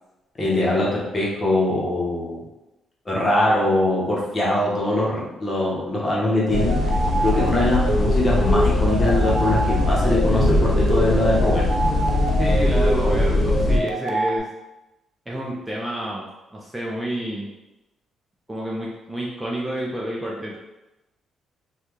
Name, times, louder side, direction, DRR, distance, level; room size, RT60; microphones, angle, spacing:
voice 1, 0.4-2.4 3.1-6.8 7.2-11.7, left 1 dB, 30° left, -5 dB, 1.1 m, -22 dB
sound 1, 6.4-14.4, right 2 dB, 60° right, 0.4 m, -26 dB
sound 2, 6.5-13.8, left 2 dB, 50° left, 0.7 m, -21 dB
voice 2, 12.4-14.5 15.3-16.3 16.5-17.5 18.5-20.6, right 1 dB, 10° right, -3 dB, 0.5 m, -29 dB
3.3 x 2.4 x 3.1 m, 0.99 s
cardioid pair, 90°, 0 cm